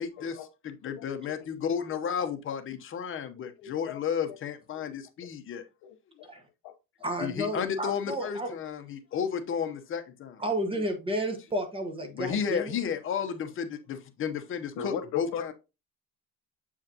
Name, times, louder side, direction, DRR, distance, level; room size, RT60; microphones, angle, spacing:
voice 1, 0.0-5.6 7.2-10.4 12.1-15.5, left 7 dB, 35° left, 0.8 m, -33 dB
voice 2, 1.0-1.4 1.9-2.0 3.6-4.0 4.3-4.4 5.8-6.3 6.6-6.7 10.7-10.8 14.8-15.5, left 8 dB, 80° left, 1.0 m, -37 dB
voice 3, 7.0-8.5 10.4-12.7, right 1 dB, 15° right, 1.1 m, -31 dB
7.6 x 4.9 x 2.8 m
cardioid pair, 155°, 34 cm